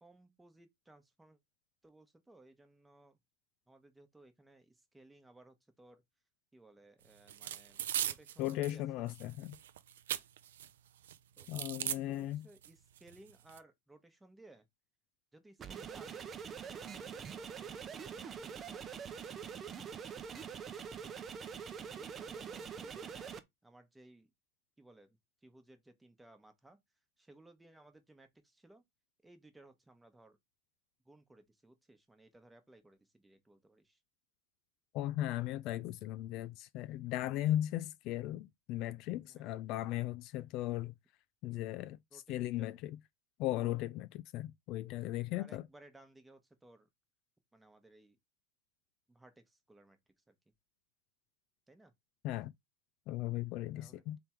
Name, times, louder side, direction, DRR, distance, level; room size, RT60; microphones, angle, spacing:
voice 1, 0.0-1.4 1.8-3.2 3.7-6.0 6.5-9.1 11.4-14.7 15.3-18.8 21.8-24.3 24.8-26.8 27.2-28.8 29.2-30.4 31.0-34.0 39.3-39.6 42.1-42.7 45.3-46.9 47.5-48.2 49.1-50.0 50.3-50.4 51.7-51.9 53.8-54.0, right 2 dB, 5° right, 1.1 m, -61 dB
sound 1, 7.3-8.8 9.1-10.7 11.0-12.0 12.6-12.7 13.0-13.6, right 10 dB, 80° right, 0.5 m, -39 dB
voice 2, 8.4-9.6 11.5-12.5 34.9-40.9 41.4-43.0 43.4-45.6 52.2-52.5 53.1-54.2, left 14 dB, 50° left, 0.3 m, -37 dB
sound 2, 15.6-23.4, right 7 dB, 25° right, 0.7 m, -44 dB
3.4 x 3.4 x 4.4 m
hypercardioid pair, 115°, 0 cm